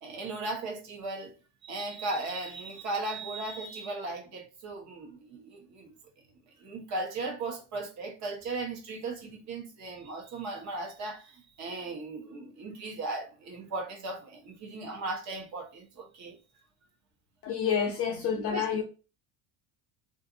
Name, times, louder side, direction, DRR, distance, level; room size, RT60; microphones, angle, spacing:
voice 1, 0.0-1.3 1.6-5.9 6.6-16.4 18.5-18.8, right 2 dB, 45° right, 1.0 m, -37 dB
voice 2, 17.4-18.8, left 7 dB, 35° left, 0.5 m, -28 dB
2.5 x 2.5 x 3.8 m
cardioid pair, 170°, 40 cm